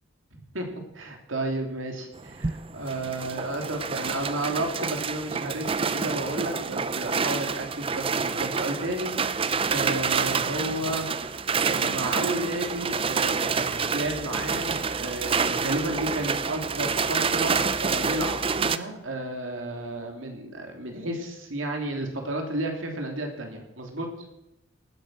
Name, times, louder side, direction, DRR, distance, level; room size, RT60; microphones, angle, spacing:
voice 1, 0.9-2.0 2.7-11.2 11.6-24.1, right 1 dB, 80° right, 3 dB, 3.1 m, -32 dB
sound 1, 2.2-18.8, right 5 dB, 25° right, 0.5 m, -28 dB
18.5 x 10.0 x 6.6 m, 0.90 s
head